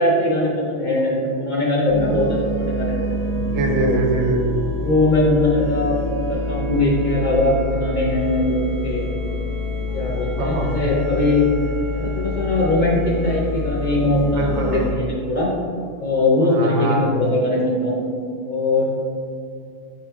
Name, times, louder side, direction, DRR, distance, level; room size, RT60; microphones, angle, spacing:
voice 1, 0.0-3.1 3.7-4.0 4.8-9.1 9.9-11.5 11.9-15.5 16.0-18.1 18.4-18.9, left 1 dB, 50° left, -4 dB, 0.6 m, -21 dB
sound 1, 1.9-14.9, left 2 dB, 20° right, 0.7 m, -26 dB
voice 2, 3.3-4.4 10.4-10.7 14.3-14.8 16.4-17.1, right 3 dB, 70° right, 2 dB, 0.9 m, -23 dB
4.8 x 3.1 x 3.4 m, 2.3 s
omnidirectional pair, 1.3 m